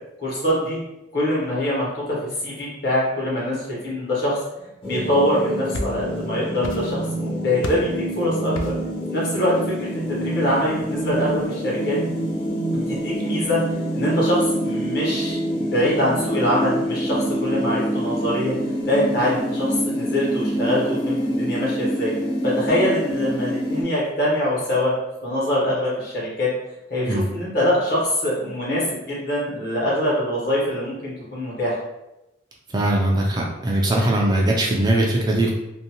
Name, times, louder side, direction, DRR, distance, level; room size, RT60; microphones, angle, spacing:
voice 1, 0.2-0.8 1.1-2.2 2.4-4.4 4.8-8.7 9.1-12.0 12.7-13.6 13.9-18.5 18.9-22.1 22.4-24.9 25.2-26.5 26.9-31.8, left 1 dB, 55° left, -6 dB, 1.1 m, -24 dB
sound 1, 4.8-23.8, equal, 30° left, 0.7 m, -26 dB
sound 2, 5.3-6.3 6.6-7.2 7.6-8.0 8.5-8.9, left 1 dB, 80° left, 0.3 m, -31 dB
voice 2, 32.7-35.5, right 1 dB, 20° right, -1 dB, 0.3 m, -20 dB
2.6 x 2.2 x 2.8 m, 0.91 s
head